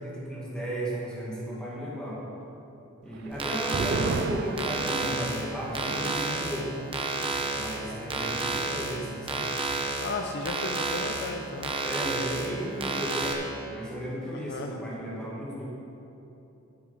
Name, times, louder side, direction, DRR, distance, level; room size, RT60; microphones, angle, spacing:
voice 1, 0.0-2.2 3.0-6.7 7.6-9.5 11.8-13.4 13.7-15.6, equal, 5° left, -6 dB, 2.1 m, -34 dB
sound 1, 3.1-10.1 10.4-10.5 10.8-11.3, right 4 dB, 50° right, 0.3 m, -37 dB
sound 2, 3.3-13.3, right 3 dB, 25° right, 0.9 m, -32 dB
voice 2, 10.0-11.8 14.3-14.7, left 3 dB, 55° left, 4 dB, 0.5 m, -35 dB
13.0 x 6.2 x 5.4 m, 3.0 s
head